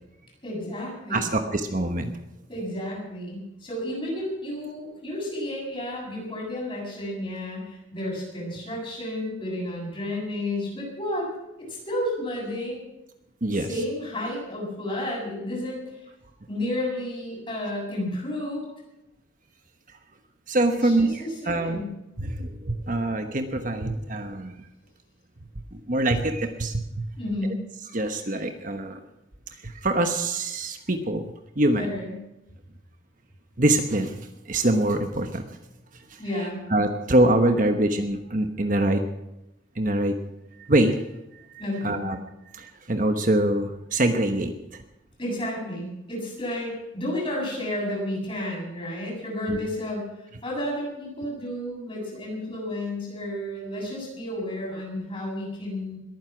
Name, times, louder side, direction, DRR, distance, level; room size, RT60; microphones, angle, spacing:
voice 1, 0.4-1.4 2.5-11.3 11.6-12.8 13.5-16.1 16.5-18.7 20.7-21.9 27.2-27.7 31.8-32.2 36.2-36.6 41.6-42.2 45.2-50.1 50.4-56.0, left 1 dB, 25° left, -3 dB, 7.5 m, -32 dB
voice 2, 1.1-2.2 13.4-13.7 20.5-21.1 21.5-21.8 22.2-24.5 25.7-27.0 27.9-29.0 29.6-31.2 31.6-31.9 33.6-35.4 36.7-39.0 39.8-40.1 40.6-41.0 41.3-41.4 41.8-42.2 42.5-44.8 49.5-49.6, right 1 dB, 40° right, 6 dB, 1.1 m, -24 dB
21.5 x 9.8 x 6.1 m, 0.91 s
head